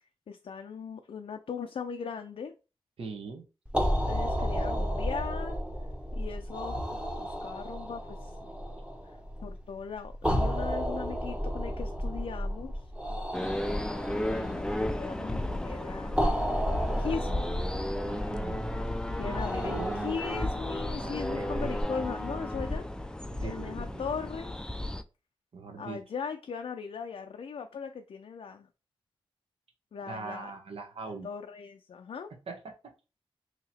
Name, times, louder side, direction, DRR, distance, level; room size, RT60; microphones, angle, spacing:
voice 1, 0.3-2.5 4.1-5.6 6.1-6.8 7.2-8.4 9.4-12.9 14.2-17.5 19.2-22.9 23.4-24.5 25.8-28.7 29.9-30.5 31.0-32.3, left 6 dB, 75° left, 0.4 m, -39 dB
voice 2, 3.0-3.4 13.1-13.6 18.0-18.9 19.2-20.2 21.0-21.7 23.3-24.0 25.5-26.0 30.1-31.3 32.5-32.7, right 4 dB, 85° right, 0.9 m, -41 dB
sound 1, 3.7-21.8, equal, 10° right, 0.9 m, -33 dB
sound 2, 13.3-25.0, left 1 dB, 10° left, 0.3 m, -34 dB
2.9 x 2.8 x 4.1 m
wide cardioid pair, 75°, 10 cm